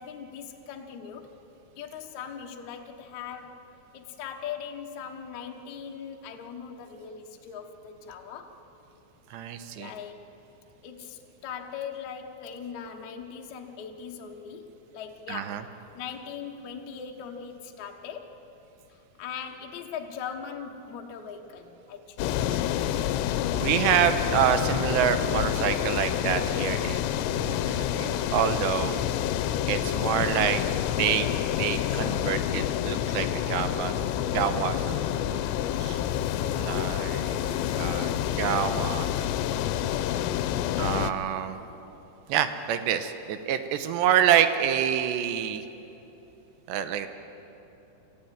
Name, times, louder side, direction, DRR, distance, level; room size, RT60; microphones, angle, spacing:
voice 1, 0.0-1.3 1.8-3.6 3.9-8.6 9.8-10.3 10.8-15.6 15.9-18.3 18.9-22.5 26.7-27.0 37.3-37.4, left 7 dB, 65° left, 2 dB, 1.8 m, -40 dB
voice 2, 9.3-9.9 15.3-15.6 23.5-29.0 29.7-30.6 31.0-31.3 31.5-33.9 34.3-35.4 35.8-36.0 36.6-39.1 40.8-41.6 42.3-45.6 46.7-47.1, right 10 dB, 80° right, 10 dB, 3.0 m, -27 dB
sound 1, 22.2-41.1, left 11 dB, 80° left, 2.8 m, -28 dB
27.0 x 15.0 x 9.3 m, 3.0 s
omnidirectional pair, 5.3 m